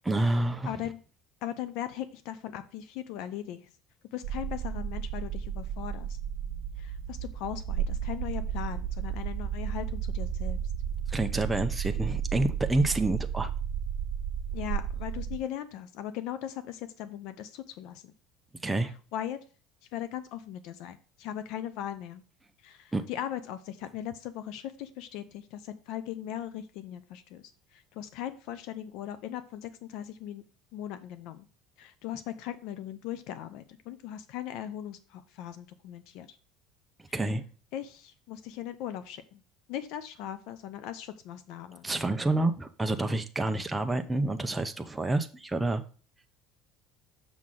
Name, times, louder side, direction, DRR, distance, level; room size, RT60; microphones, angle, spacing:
voice 1, 0.0-0.7 11.1-13.5 18.6-18.9 22.9-23.0 37.1-37.4 41.8-45.8, right 2 dB, 10° right, 6 dB, 0.6 m, -28 dB
voice 2, 0.6-1.0 1.4-3.6 4.1-6.2 6.8-10.6 14.5-18.1 19.1-19.4 19.9-22.2 22.6-30.4 30.7-31.5 31.8-36.4 37.7-39.4 39.7-41.9, left 11 dB, 70° left, 12 dB, 0.6 m, -39 dB
sound 1, 4.2-15.4, right 8 dB, 70° right, 0.5 m, -33 dB
6.2 x 5.9 x 3.8 m, 0.38 s
cardioid pair, 120°, 0 cm